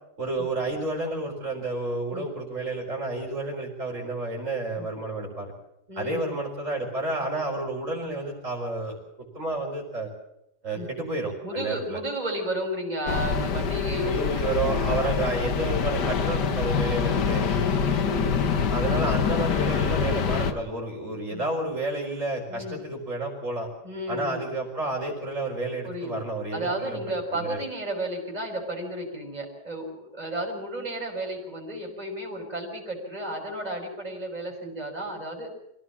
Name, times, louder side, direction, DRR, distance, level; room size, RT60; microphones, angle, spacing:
voice 1, 0.2-5.5 5.9-9.0 9.3-10.1 10.6-12.0 14.0-17.4 18.7-23.7 24.1-27.6, right 2 dB, 45° right, -2 dB, 4.9 m, -30 dB
voice 2, 5.9-6.3 10.7-10.9 11.4-14.2 14.7-15.0 17.4-18.5 21.3-21.4 22.5-22.8 23.8-24.4 25.8-26.2 26.5-35.5, right 1 dB, 25° right, 0 dB, 5.8 m, -33 dB
sound 1, 13.1-20.5, left 6 dB, 80° left, 2.0 m, -25 dB
26.0 x 17.0 x 7.3 m, 0.84 s
omnidirectional pair, 1.8 m